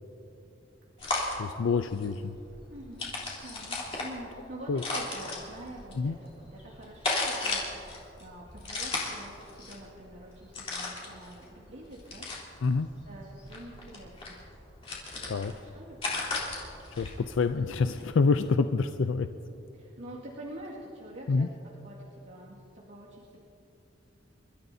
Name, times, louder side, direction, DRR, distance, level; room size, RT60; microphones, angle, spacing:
sound 1, 1.0-18.0, left 3 dB, 30° left, 3.3 m, -36 dB
voice 1, 1.4-2.4 4.7-4.8 6.0-6.2 12.6-12.9 15.3-15.5 17.0-19.3 21.3-21.5, left 4 dB, 85° left, 9 dB, 0.4 m, -27 dB
voice 2, 2.7-3.1 3.4-12.3 13.0-14.4 15.3-16.4 19.7-21.5 21.8-23.4, right 1 dB, 80° right, -7 dB, 2.1 m, -46 dB
29.0 x 14.0 x 2.7 m, 2.9 s
head